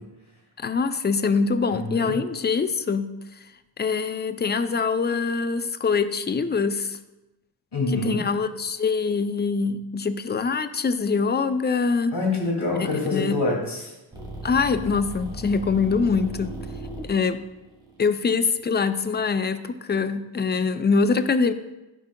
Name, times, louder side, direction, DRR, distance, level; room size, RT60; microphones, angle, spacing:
voice 1, 0.6-3.1 3.8-7.0 7.9-12.1 13.1-13.4 14.4-16.5 17.1-17.4 18.0-21.5, left 5 dB, 25° left, 11 dB, 0.4 m, -24 dB
voice 2, 1.7-2.1 7.7-8.2 12.1-13.9, left 2 dB, 55° left, -2 dB, 2.5 m, -26 dB
sound 1, 14.1-19.3, right 1 dB, 10° right, 2.4 m, -37 dB
11.0 x 4.9 x 2.2 m, 1.0 s
cardioid pair, 60°, 49 cm